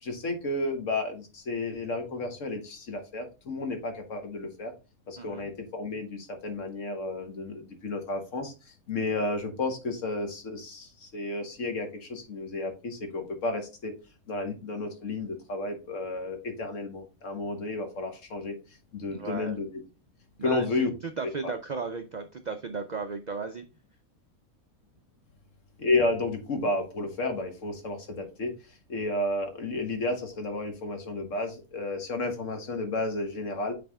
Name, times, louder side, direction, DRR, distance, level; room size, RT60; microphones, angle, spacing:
voice 1, 0.0-4.7 5.1-13.9 14.3-18.5 18.9-19.7 20.4-20.9 21.4-21.5 25.8-28.5 28.9-33.7, left 2 dB, 60° left, 5 dB, 1.6 m, -32 dB
voice 2, 19.1-19.6 20.4-20.7 21.2-23.6, right 4 dB, 90° right, 6 dB, 0.3 m, -35 dB
8.3 x 3.4 x 3.5 m, 0.30 s
omnidirectional pair, 1.5 m